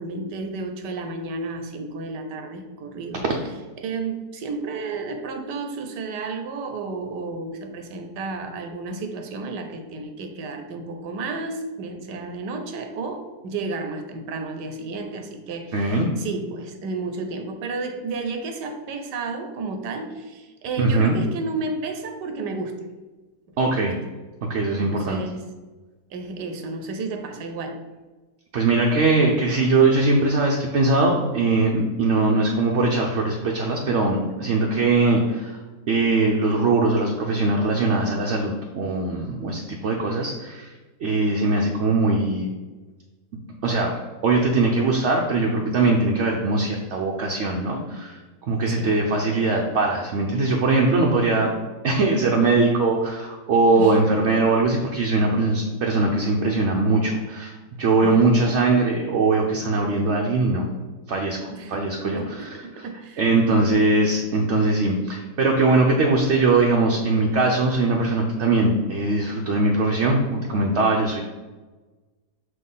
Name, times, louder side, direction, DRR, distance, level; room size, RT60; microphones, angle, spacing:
voice 1, 0.0-3.2 3.8-22.8 23.6-23.8 24.8-25.4 26.1-27.8 48.8-49.0 53.7-54.0 58.0-58.3 61.5-61.7 62.1-63.2, right 3 dB, 85° right, 6 dB, 1.3 m, -32 dB
voice 2, 15.7-16.1 20.8-21.2 23.6-23.9 24.5-25.2 28.5-35.6 35.9-40.7 41.0-42.5 43.6-43.9 44.2-48.2 48.5-51.5 51.8-60.7 61.1-62.6 63.2-71.3, right 3 dB, 60° right, 0 dB, 0.7 m, -21 dB
5.7 x 3.0 x 5.5 m, 1.2 s
omnidirectional pair, 1.8 m